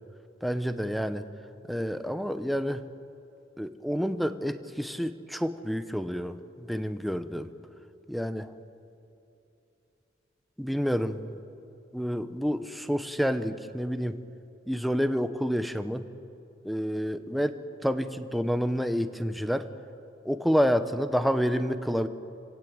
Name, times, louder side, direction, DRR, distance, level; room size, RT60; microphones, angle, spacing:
voice 1, 0.4-1.2 1.7-2.8 3.6-7.5 8.1-8.5 10.6-11.4 11.9-14.2 14.7-16.0 16.6-19.7 20.2-22.1, equal, ahead, 11 dB, 0.8 m, -29 dB
28.0 x 17.5 x 8.0 m, 2.8 s
head